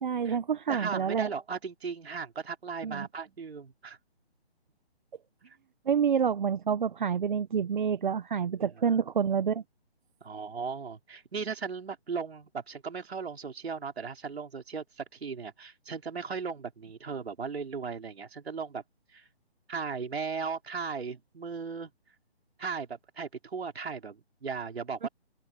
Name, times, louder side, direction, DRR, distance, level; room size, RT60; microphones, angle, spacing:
voice 1, 0.0-1.3 2.8-3.1 5.9-9.6 25.0-25.1, right 7 dB, 45° right, 1.2 m, -28 dB
voice 2, 0.7-4.0 8.8-9.0 10.2-18.8 19.1-19.2 19.7-21.9 22.6-25.1, right 5 dB, 70° right, 5.2 m, -37 dB
open air
hypercardioid pair, 165°, 33 cm